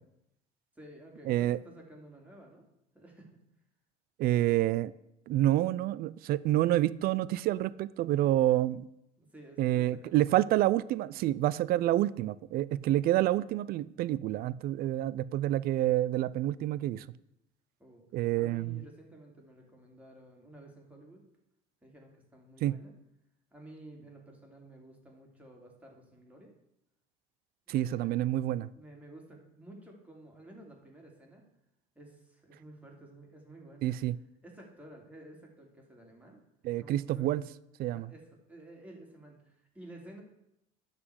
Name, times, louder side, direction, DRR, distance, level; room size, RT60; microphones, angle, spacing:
voice 1, 0.7-2.6 2.9-3.4 9.2-10.6 17.8-18.0 18.4-21.2 21.8-22.9 23.5-26.5 27.7-28.2 28.7-31.4 31.9-34.0 34.4-36.4 36.8-37.3 37.9-40.2, right 1 dB, 5° right, 2.8 m, -52 dB
voice 2, 1.3-1.6 4.2-4.9 5.3-8.9 9.6-17.0 18.1-18.8 22.6-22.8 27.7-28.7 33.8-34.2 36.6-37.4 37.8-38.1, right 14 dB, 55° right, 0.4 m, -28 dB
11.5 x 4.1 x 7.9 m
supercardioid pair, 95°, 18 cm